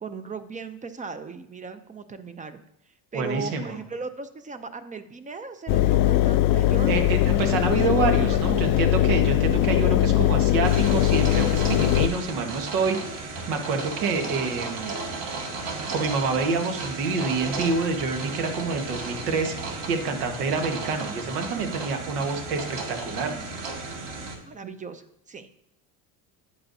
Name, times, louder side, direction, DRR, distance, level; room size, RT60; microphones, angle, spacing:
voice 1, 0.0-2.6 3.1-7.1 8.3-8.8 23.3-23.5 24.4-25.5, right 4 dB, 20° right, 11 dB, 0.4 m, -37 dB
voice 2, 3.1-3.7 6.9-13.0 13.5-14.9 15.9-23.3, right 4 dB, 90° right, 5 dB, 1.4 m, -27 dB
Engine, 5.7-12.1, left 13 dB, 50° left, 0.5 m, -21 dB
sound 1, 10.6-24.4, right 3 dB, 60° right, 2.0 m, -34 dB
8.8 x 8.7 x 2.7 m, 0.77 s
cardioid pair, 110°, 45 cm